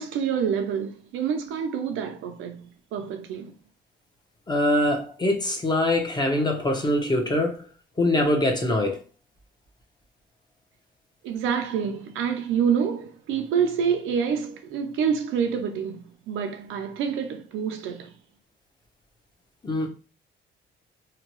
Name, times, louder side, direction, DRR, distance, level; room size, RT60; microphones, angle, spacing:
voice 1, 0.0-3.5 11.2-18.1, right 7 dB, 90° right, 0.5 m, -27 dB
voice 2, 4.5-7.7 8.0-9.0 19.6-19.9, left 1 dB, 20° left, 0.8 m, -23 dB
2.7 x 2.2 x 3.0 m
cardioid pair, 90°, 20 cm